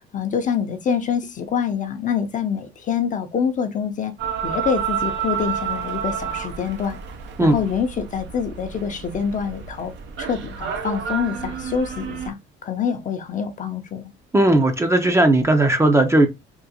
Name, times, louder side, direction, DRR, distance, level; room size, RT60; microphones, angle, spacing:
voice 1, 0.0-4.1 4.4-7.0 7.4-9.9 10.2-14.1, left 7 dB, 40° left, 0.6 m, -26 dB
sound 1, 4.2-12.3, right 7 dB, 65° right, 0.6 m, -30 dB
voice 2, 14.3-16.3, right 1 dB, 15° right, 0.6 m, -16 dB
3.6 x 2.5 x 2.7 m
cardioid pair, 95°, 20 cm